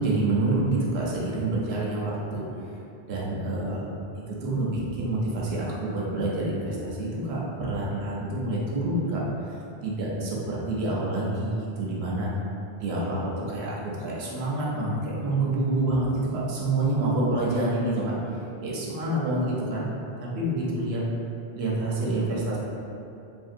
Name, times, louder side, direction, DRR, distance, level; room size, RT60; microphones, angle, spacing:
voice 1, 0.0-2.5 3.0-3.9 4.3-9.2 9.5-12.3 12.8-18.1 18.6-19.9 20.2-21.0 21.5-22.6, right 2 dB, 70° right, -5 dB, 0.9 m, -27 dB
3.4 x 2.1 x 2.5 m, 2.7 s
omnidirectional pair, 1.1 m